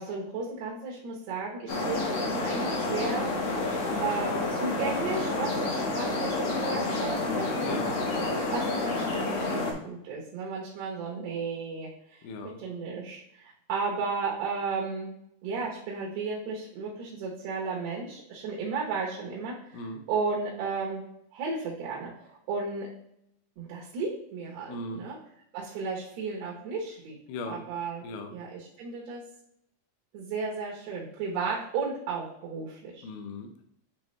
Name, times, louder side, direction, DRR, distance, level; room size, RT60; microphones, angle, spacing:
voice 1, 0.0-3.3 4.0-7.8 8.3-12.3 12.6-15.1 15.4-19.8 20.1-21.0 21.3-22.9 23.6-25.2 25.5-27.2 27.5-28.1 28.3-29.2 30.1-33.0, right 4 dB, 80° right, -3 dB, 3.3 m, -34 dB
sound 1, 1.7-9.7, left 2 dB, 60° left, 1.9 m, -29 dB
voice 2, 12.2-12.6 19.7-20.0 24.7-25.0 27.3-27.6 28.0-28.3 33.0-33.6, left 2 dB, 75° left, 5 dB, 2.1 m, -38 dB
9.0 x 3.5 x 3.2 m, 0.75 s
omnidirectional pair, 4.6 m